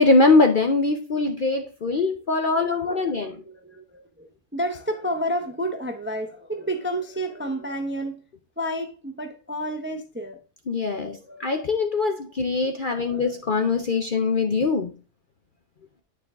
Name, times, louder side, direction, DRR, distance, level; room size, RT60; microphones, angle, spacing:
voice 1, 0.0-3.4 10.7-14.9, left 3 dB, 50° left, 0.7 m, -22 dB
voice 2, 2.5-8.2 8.6-10.4 11.1-11.5 13.1-13.3, equal, 10° right, 0.5 m, -31 dB
9.6 x 4.6 x 3.6 m
omnidirectional pair, 1.5 m